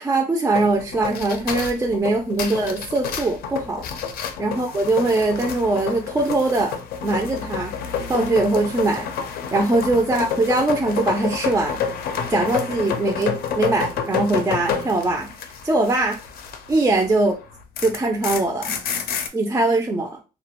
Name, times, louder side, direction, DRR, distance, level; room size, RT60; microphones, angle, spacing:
voice 1, 0.0-3.8 4.4-6.7 7.0-7.7 8.1-9.1 9.5-11.8 12.3-15.3 15.6-16.2 16.7-17.3 17.8-18.7 19.3-20.2, right 2 dB, 15° right, 2 dB, 0.4 m, -21 dB
sound 1, 0.6-17.1 17.4-19.3, left 7 dB, 65° left, 0.5 m, -29 dB
2.3 x 2.1 x 2.9 m, 0.32 s
cardioid pair, 110°, 17 cm